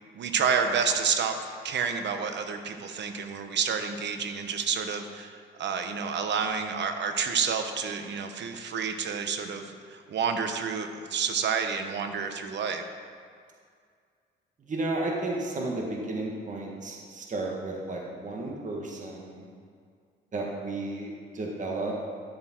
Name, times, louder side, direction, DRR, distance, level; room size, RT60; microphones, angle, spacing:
voice 1, 0.1-1.4 1.6-12.8, right 6 dB, 65° right, 7 dB, 1.1 m, -29 dB
voice 2, 14.7-19.4 20.3-22.0, right 2 dB, 40° right, -1 dB, 1.7 m, -33 dB
11.5 x 7.4 x 4.5 m, 2.1 s
cardioid pair, 90°, 20 cm